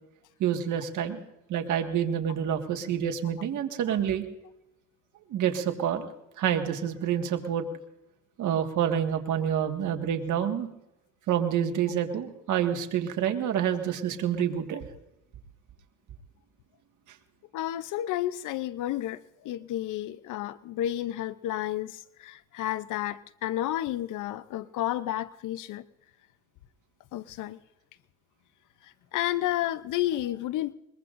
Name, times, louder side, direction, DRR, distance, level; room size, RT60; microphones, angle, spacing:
voice 1, 0.4-1.2 1.5-4.2 5.3-6.1 6.4-7.7 8.4-10.7 11.3-14.8, right 9 dB, 75° right, 5 dB, 1.8 m, -28 dB
voice 2, 17.5-25.8 27.1-27.6 28.8-30.7, left 13 dB, 85° left, 15 dB, 0.7 m, -31 dB
22.5 x 21.5 x 2.6 m, 0.90 s
cardioid pair, 90°, 30 cm